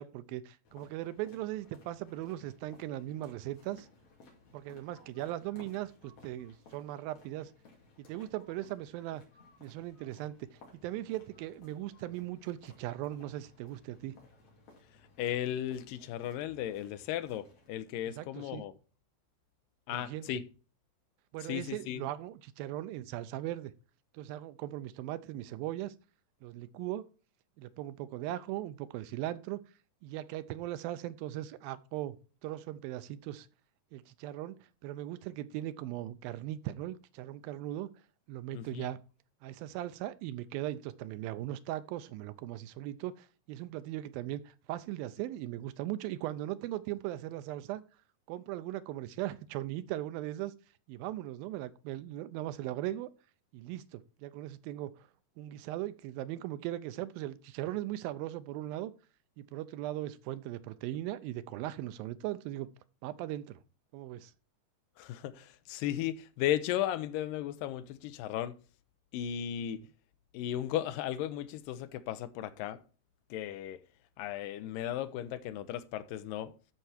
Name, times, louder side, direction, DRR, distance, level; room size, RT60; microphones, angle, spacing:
voice 1, 0.0-3.9 4.5-7.5 8.0-9.2 9.6-14.2 18.2-18.6 19.9-20.3 21.3-23.7 24.1-25.9 26.4-27.1 27.6-29.6 30.0-32.2 32.4-33.5 33.9-34.6 34.8-37.9 38.3-39.0 39.4-47.8 48.3-50.5 50.9-53.1 53.5-55.1 55.4-58.9 59.4-62.7 63.0-63.6 63.9-64.3, right 14 dB, 85° right, 2.5 m, -39 dB
sound 1, 0.6-17.7, left 3 dB, 55° left, 3.6 m, -59 dB
voice 2, 15.2-18.7 19.9-20.4 21.5-22.1 38.5-38.9 65.0-68.6 69.1-69.9 70.3-72.8 73.3-73.8 74.2-76.5, left 11 dB, 80° left, 2.3 m, -35 dB
12.5 x 4.7 x 4.2 m
omnidirectional pair, 4.1 m